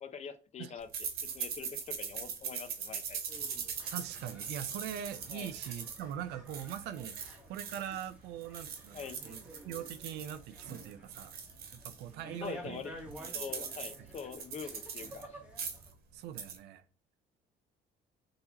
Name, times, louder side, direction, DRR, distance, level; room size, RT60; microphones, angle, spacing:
voice 1, 0.0-0.9 1.3-3.2 5.3-5.5 8.9-9.4 12.4-12.9 13.3-15.4, left 7 dB, 40° left, 0.6 m, -44 dB
sound 1, 0.9-8.1 8.4-12.0 12.4-12.5 12.8-15.2 15.5-15.9 16.2-16.6, right 7 dB, 65° right, 1.1 m, -41 dB
sound 2, 3.3-15.9, equal, 5° right, 1.1 m, -52 dB
voice 2, 3.9-9.4 9.6-11.3 11.7-12.9 14.0-14.1 16.1-16.8, right 10 dB, 85° right, 0.5 m, -42 dB
3.9 x 2.9 x 4.0 m
cardioid pair, 110°, 17 cm